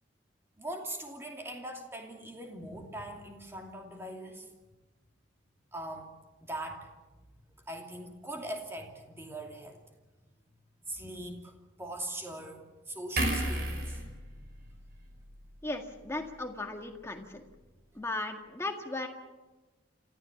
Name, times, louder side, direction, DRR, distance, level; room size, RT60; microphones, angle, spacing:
voice 1, 0.6-4.5 5.7-6.1 6.4-6.9 7.7-9.8 10.9-11.5 11.8-14.0, right 1 dB, 10° right, 2 dB, 2.7 m, -41 dB
sound 1, 13.2-16.5 16.9-17.1, right 1 dB, 50° right, 5.2 m, -35 dB
voice 2, 15.6-17.4 18.0-19.1, left 2 dB, 15° left, 3 dB, 1.8 m, -36 dB
27.0 x 15.0 x 7.2 m, 1.2 s
head